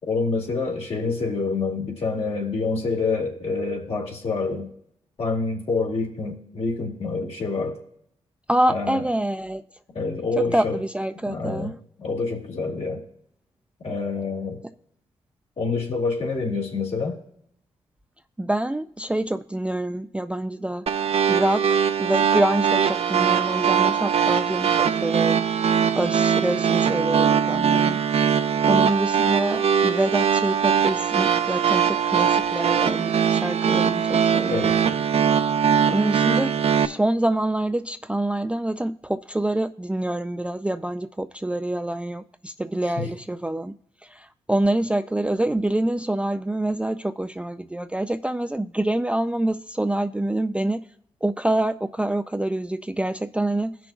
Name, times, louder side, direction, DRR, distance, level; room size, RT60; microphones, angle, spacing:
voice 1, 0.0-4.7 5.2-7.8 8.7-9.0 9.9-10.8 11.2-11.7 12.0-13.0 13.8-14.6 15.6-17.2 34.5-34.8 43.0-43.1, left 4 dB, 60° left, 2.3 m, -27 dB
voice 2, 8.5-9.6 10.4-11.8 18.4-20.9 21.3-25.4 26.0-28.4 28.7-34.7 35.9-43.8 44.0-50.8 51.2-53.8, right 1 dB, 10° right, 0.3 m, -26 dB
sound 1, 20.9-36.9, right 7 dB, 55° right, 0.6 m, -21 dB
15.5 x 6.1 x 2.4 m
cardioid pair, 55°, 12 cm